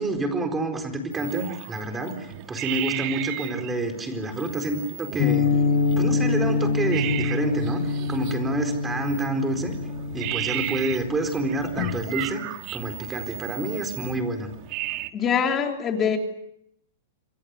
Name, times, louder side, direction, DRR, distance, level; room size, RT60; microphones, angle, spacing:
voice 1, 0.0-5.5 6.0-9.7 10.1-12.4 12.7-14.5, right 2 dB, 10° right, 6 dB, 4.3 m, -28 dB
sound 1, 1.1-15.1, right 15 dB, 40° right, 1.6 m, -35 dB
sound 2, 5.2-12.0, left 4 dB, 40° left, 3.8 m, -26 dB
voice 2, 15.1-16.2, left 7 dB, 20° left, 4 dB, 3.2 m, -23 dB
28.0 x 24.5 x 6.5 m, 0.77 s
supercardioid pair, 155°, 0 cm